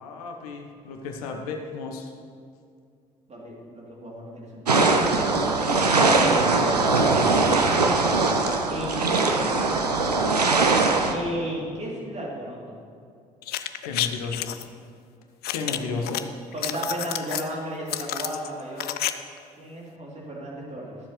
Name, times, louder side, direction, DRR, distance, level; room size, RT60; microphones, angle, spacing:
voice 1, 0.0-2.1 13.8-14.5 15.5-16.2, left 4 dB, 70° left, 3 dB, 1.0 m, -33 dB
voice 2, 3.3-8.0 8.7-9.8 11.1-12.8 15.7-16.1 16.5-18.9 19.6-21.0, right 1 dB, 35° right, -3 dB, 3.1 m, -34 dB
sound 1, 4.7-11.1, right 3 dB, 85° right, 0.5 m, -21 dB
sound 2, 13.4-14.6 15.4-16.2 16.5-17.5 17.9-19.1 19.4-19.5, left 13 dB, 50° left, 0.5 m, -29 dB
22.0 x 7.4 x 3.2 m, 2.3 s
figure-of-eight pair, 50°, 20 cm